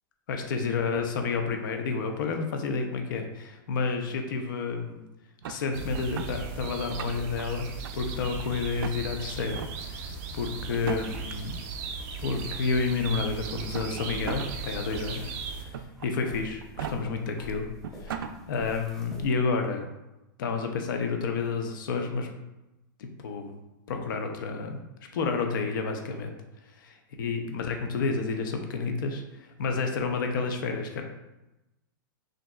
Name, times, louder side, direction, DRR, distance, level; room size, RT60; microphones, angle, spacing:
voice 1, 0.3-5.0 5.4-9.6 9.9-10.1 10.3-11.5 12.2-15.7 16.0-17.7 18.0-19.9 20.4-22.3 23.0-23.6 23.9-24.8 25.1-26.3 26.8-31.0, left 4 dB, 70° left, 4 dB, 0.7 m, -30 dB
sound 1, 5.4-6.3 6.8-7.4 7.8-8.4 8.8-9.0 9.5-9.7 10.7-11.3 12.4-12.5 13.5-14.5 14.9-15.0 15.7-16.1 16.6-16.9 17.5-17.6 17.8-18.3, right 8 dB, 90° right, 0.4 m, -36 dB
sound 2, 5.7-15.7, right 5 dB, 45° right, 0.6 m, -37 dB
sound 3, 13.3-19.3, left 2 dB, 5° left, 0.6 m, -48 dB
6.2 x 2.6 x 2.3 m, 0.98 s
supercardioid pair, 155°, 11 cm